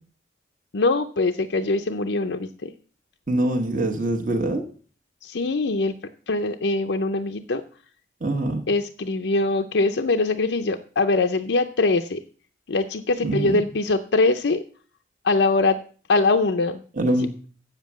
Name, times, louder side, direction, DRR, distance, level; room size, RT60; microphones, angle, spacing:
voice 1, 0.7-2.7 5.2-5.9 6.3-7.6 8.7-12.2 12.7-14.6 15.2-15.8 16.1-16.8 17.1-17.3, left 3 dB, 75° left, 6 dB, 0.6 m, -22 dB
voice 2, 3.3-4.6 8.2-8.7 13.2-13.6 17.0-17.3, right 1 dB, 45° right, 2 dB, 1.2 m, -24 dB
8.1 x 7.4 x 7.3 m, 0.42 s
head